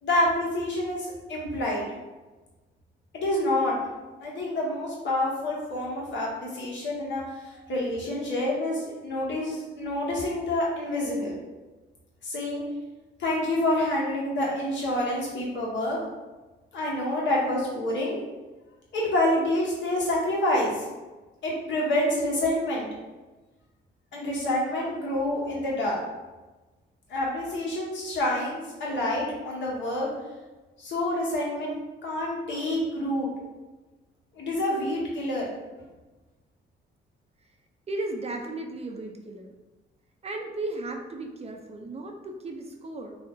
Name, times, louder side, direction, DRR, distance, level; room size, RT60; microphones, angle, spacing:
voice 1, 0.0-1.9 3.1-3.8 4.2-7.2 7.5-11.3 12.2-12.6 13.2-16.0 16.7-18.2 18.9-20.8 21.4-22.9 24.1-26.0 27.1-30.1 30.8-31.7 32.0-33.4 34.4-35.4, left 1 dB, 65° left, -4 dB, 1.0 m, -27 dB
voice 2, 37.9-39.5 40.2-43.1, right 2 dB, 30° right, 3 dB, 0.4 m, -35 dB
2.5 x 2.0 x 3.6 m, 1.2 s
cardioid pair, 90°, 20 cm